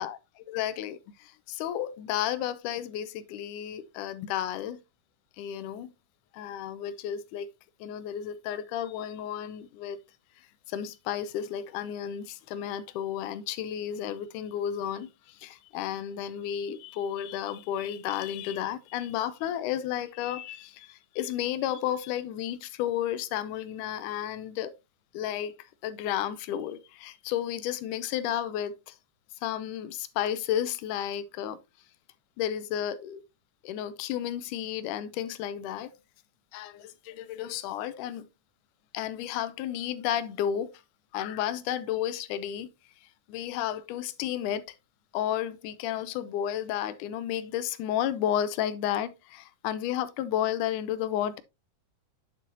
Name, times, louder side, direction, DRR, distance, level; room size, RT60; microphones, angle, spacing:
voice 1, 0.0-4.8 5.4-5.9 6.3-7.5 7.8-10.0 10.7-24.7 25.1-29.0 29.4-31.6 32.4-33.2 33.6-35.9 36.5-38.3 38.9-40.8 41.1-42.7 43.0-44.8 45.1-51.4, left 10 dB, 80° left, 2.1 m, -32 dB
9.4 x 7.5 x 2.7 m
omnidirectional pair, 3.8 m